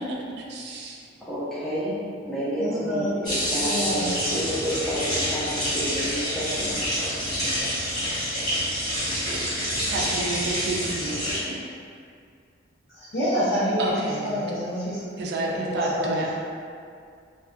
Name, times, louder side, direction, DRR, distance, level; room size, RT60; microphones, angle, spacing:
voice 1, 0.1-1.0 9.9-11.6 13.8-14.4 15.2-16.3, right 2 dB, 60° right, -2 dB, 0.4 m, -30 dB
voice 2, 1.2-2.0 2.3-7.8, equal, ahead, -12 dB, 0.6 m, -30 dB
voice 3, 2.6-4.1 12.9-16.3, equal, 80° left, -14 dB, 0.8 m, -28 dB
sound 1, 3.2-11.4, equal, 25° left, 1.3 m, -27 dB
2.4 x 2.3 x 2.4 m, 2.3 s
head